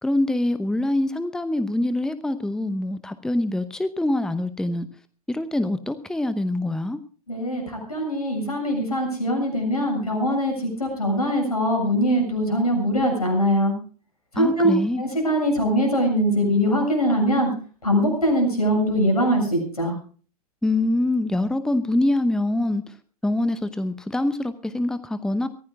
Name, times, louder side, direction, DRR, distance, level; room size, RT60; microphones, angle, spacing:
voice 1, 0.0-4.9 5.3-7.0 14.4-15.0 20.6-22.9 23.2-25.5, left 1 dB, 5° left, 13 dB, 0.9 m, -24 dB
voice 2, 7.3-13.7 14.3-14.7 15.0-17.5 17.8-19.9, equal, 80° left, 3 dB, 7.3 m, -22 dB
24.0 x 15.5 x 2.4 m, 0.40 s
figure-of-eight pair, 90°, 19 cm